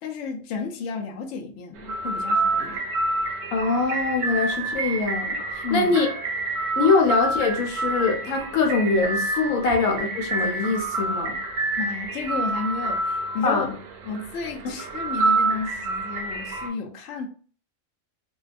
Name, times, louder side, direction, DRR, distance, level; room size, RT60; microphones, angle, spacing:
voice 1, 0.0-2.8 5.6-5.9 11.8-13.7 14.0-17.3, left 5 dB, 70° left, 0.8 m, -32 dB
sound 1, 1.8-16.7, right 2 dB, 70° right, 0.9 m, -28 dB
voice 2, 3.5-6.1 6.8-11.4 13.4-13.7, left 4 dB, 90° left, 1.1 m, -23 dB
2.6 x 2.2 x 2.4 m
omnidirectional pair, 1.4 m